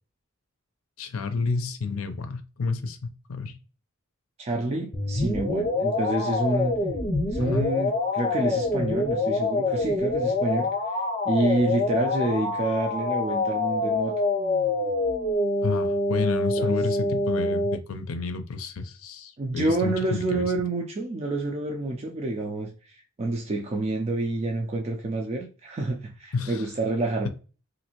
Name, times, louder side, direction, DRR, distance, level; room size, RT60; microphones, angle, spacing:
voice 1, 1.0-3.5 7.5-7.7 15.6-20.5 26.3-26.6, left 4 dB, 75° left, 0.5 m, -30 dB
voice 2, 4.4-6.7 7.3-14.2 16.6-16.8 19.4-27.3, right 2 dB, 30° right, 0.4 m, -28 dB
sound 1, 4.9-17.8, left 2 dB, 30° left, 0.7 m, -26 dB
3.1 x 2.6 x 2.9 m
head